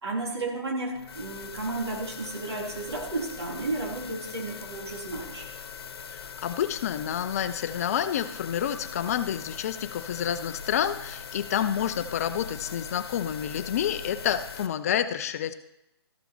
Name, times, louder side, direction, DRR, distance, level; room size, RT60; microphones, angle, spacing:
voice 1, 0.0-5.5, right 2 dB, 75° right, -1 dB, 3.2 m, -33 dB
sound 1, 0.9-14.7, left 6 dB, 65° left, 1.2 m, -41 dB
voice 2, 6.1-15.5, left 9 dB, 35° left, 12 dB, 0.6 m, -29 dB
13.5 x 6.9 x 4.4 m, 0.86 s
hypercardioid pair, 155°, 14 cm